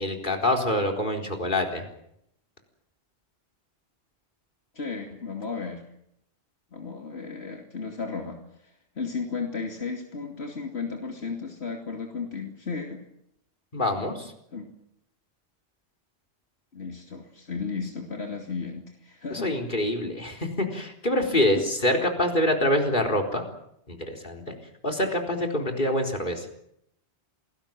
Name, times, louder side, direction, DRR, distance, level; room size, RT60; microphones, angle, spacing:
voice 1, 0.0-1.8 13.7-14.3 19.3-23.4 23.9-24.5 24.8-26.5, left 1 dB, 50° left, 3 dB, 4.4 m, -26 dB
voice 2, 4.7-5.8 6.7-8.4 9.0-13.0 14.5-14.7 16.7-19.5 21.5-21.6, left 4 dB, 75° left, 2 dB, 2.9 m, -34 dB
28.5 x 20.0 x 7.6 m, 0.75 s
omnidirectional pair, 1.1 m